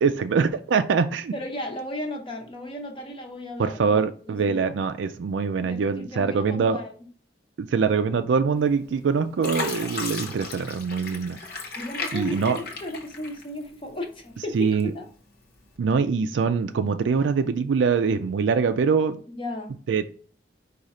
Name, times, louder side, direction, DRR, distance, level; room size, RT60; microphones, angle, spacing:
voice 1, 0.0-1.3 3.6-6.8 7.6-11.4 12.1-12.6 14.5-14.9 15.8-19.2 19.9-20.1, right 5 dB, 80° right, 8 dB, 0.4 m, -23 dB
voice 2, 1.3-4.7 5.6-6.9 11.8-15.1 19.4-19.7, left 1 dB, 30° left, 3 dB, 0.7 m, -35 dB
Fill (with liquid), 8.7-9.0 9.4-13.8 14.3-15.1 15.6-15.8, left 4 dB, 55° left, 0.9 m, -35 dB
4.9 x 2.4 x 4.1 m, 0.43 s
head